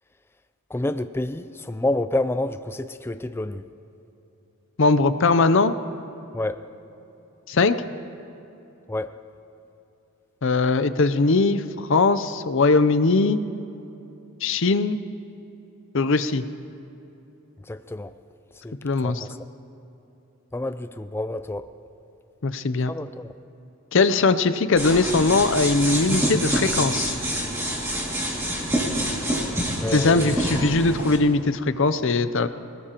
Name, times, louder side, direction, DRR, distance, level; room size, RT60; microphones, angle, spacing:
voice 1, 0.7-3.6 6.3-6.6 8.9-9.1 17.7-18.1 18.6-19.3 20.5-21.7 22.9-23.3 29.8-30.4, left 2 dB, 10° left, 12 dB, 0.3 m, -28 dB
voice 2, 4.8-5.7 7.5-7.8 10.4-13.4 14.4-15.0 15.9-16.4 18.8-19.3 22.4-22.9 23.9-27.2 29.9-32.5, left 3 dB, 60° left, 12 dB, 0.6 m, -20 dB
sound 1, 24.8-31.2, right 1 dB, 10° right, 2.3 m, -26 dB
26.5 x 18.5 x 3.0 m, 2.9 s
head